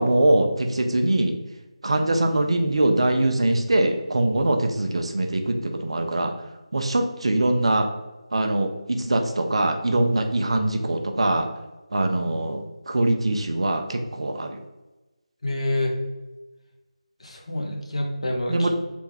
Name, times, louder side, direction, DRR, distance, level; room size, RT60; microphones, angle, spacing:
voice 1, 0.0-1.4 1.8-6.3 6.7-7.9 8.3-11.5 11.9-14.6 18.5-18.7, right 1 dB, 55° right, 5 dB, 0.4 m, -22 dB
voice 2, 15.4-15.9 17.2-18.7, left 1 dB, 60° left, 1 dB, 0.7 m, -27 dB
3.4 x 2.2 x 3.1 m, 1.1 s
figure-of-eight pair, 160°, 4 cm